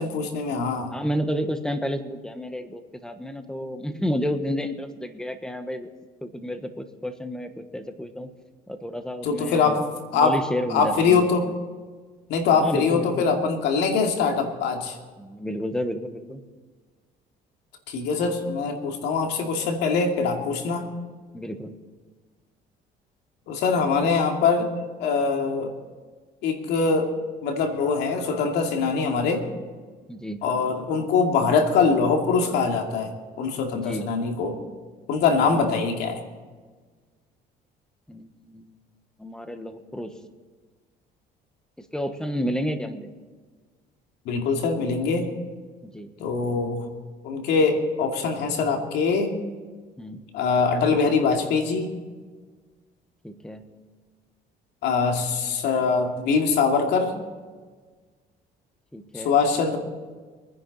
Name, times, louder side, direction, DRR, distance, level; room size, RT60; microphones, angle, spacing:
voice 1, 0.0-0.9 9.2-9.8 10.1-10.4 10.7-11.5 12.3-15.0 17.9-20.9 23.5-24.7 25.0-25.7 26.4-27.1 27.4-29.4 30.4-34.6 35.1-36.2 44.3-45.3 46.2-46.9 47.2-49.3 50.3-51.9 54.8-57.1 59.1-59.8, left 5 dB, 85° left, 3 dB, 2.5 m, -23 dB
voice 2, 0.9-5.9 6.2-8.3 8.7-9.8 10.1-11.3 12.5-13.4 15.2-16.4 21.3-21.8 23.9-24.0 30.1-30.4 33.7-34.1 35.5-35.7 38.1-38.8 39.2-40.1 41.8-43.1 45.8-46.1 50.0-50.2 53.2-53.7 58.9-59.3, equal, 5° left, 8 dB, 1.3 m, -31 dB
23.5 x 10.0 x 4.2 m, 1.4 s
cardioid pair, 110°, 17 cm